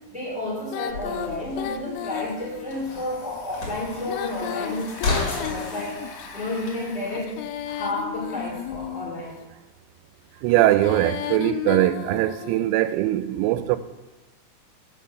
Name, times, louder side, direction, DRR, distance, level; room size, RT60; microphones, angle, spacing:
voice 1, 0.1-6.0 6.3-7.3 7.6-9.4, left 2 dB, 5° right, 0.7 m, -31 dB
Female singing, 0.7-2.8 4.0-6.3 7.1-9.2 10.5-12.7, left 10 dB, 85° left, 3.0 m, -33 dB
sound 1, 0.9-5.9, left 3 dB, 40° left, 2.7 m, -33 dB
Domestic sounds home sounds, 2.2-8.8, left 3 dB, 60° left, 2.2 m, -44 dB
voice 2, 10.4-13.8, right 15 dB, 85° right, 3.3 m, -21 dB
8.5 x 7.4 x 5.7 m
omnidirectional pair, 6.0 m